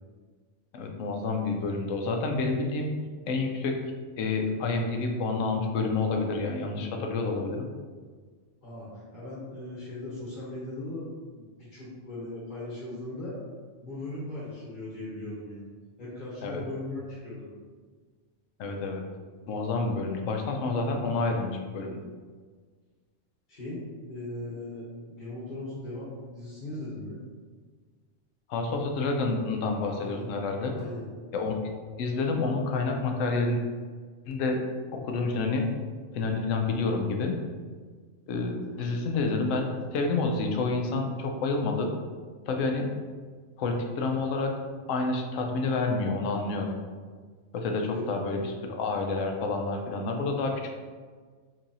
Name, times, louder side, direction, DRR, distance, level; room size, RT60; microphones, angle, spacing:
voice 1, 0.7-2.9 3.3-3.7 4.2-7.7 16.4-16.6 18.6-19.0 19.5-22.1 28.5-30.7 31.3-31.6 32.0-33.6 34.3-34.6 35.0-35.7 36.1-37.3 38.3-39.7 39.9-41.9 42.5-42.9 43.6-44.5 44.9-46.8 47.5-50.5, left 3 dB, 85° left, 3 dB, 0.9 m, -28 dB
voice 2, 8.6-11.1 11.3-13.4 13.8-15.6 16.0-17.5 23.5-23.8 24.1-27.2 29.9-30.3 30.7-31.0 38.7-39.0 47.9-48.0, left 2 dB, 45° left, -8 dB, 1.0 m, -38 dB
4.1 x 2.7 x 2.6 m, 1.5 s
omnidirectional pair, 1.3 m